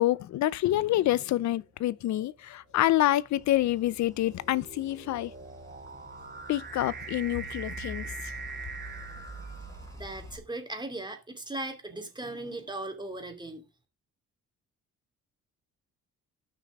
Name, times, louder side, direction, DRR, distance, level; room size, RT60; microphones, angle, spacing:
voice 1, 0.0-5.3 6.5-8.1, left 14 dB, 70° left, 0.6 m, -27 dB
sound 1, 0.8-1.2 2.0-10.3, right 5 dB, 30° right, 1.7 m, -44 dB
sound 2, 3.4-10.4, right 1 dB, 10° left, 3.9 m, -46 dB
voice 2, 9.9-13.6, right 2 dB, 15° right, 2.4 m, -38 dB
14.0 x 6.1 x 3.6 m
cardioid pair, 90°, 30 cm